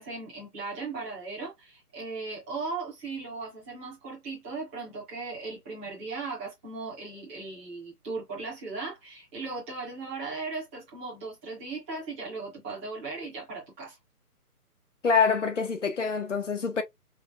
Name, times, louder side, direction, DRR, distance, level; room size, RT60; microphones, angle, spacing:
voice 1, 0.0-14.0, right 3 dB, 5° right, 0.9 m, -37 dB
voice 2, 15.0-16.8, left 5 dB, 50° left, 1.1 m, -25 dB
5.1 x 3.2 x 2.4 m
hypercardioid pair, 175°, 47 cm